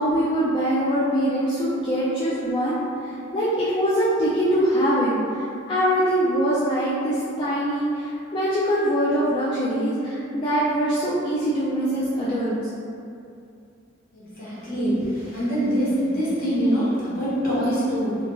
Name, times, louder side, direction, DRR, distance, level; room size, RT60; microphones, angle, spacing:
voice 1, 0.0-12.5, equal, 25° left, -10 dB, 0.3 m, -23 dB
voice 2, 14.1-18.2, equal, 50° left, -10 dB, 1.0 m, -24 dB
2.4 x 2.2 x 2.9 m, 2.5 s
head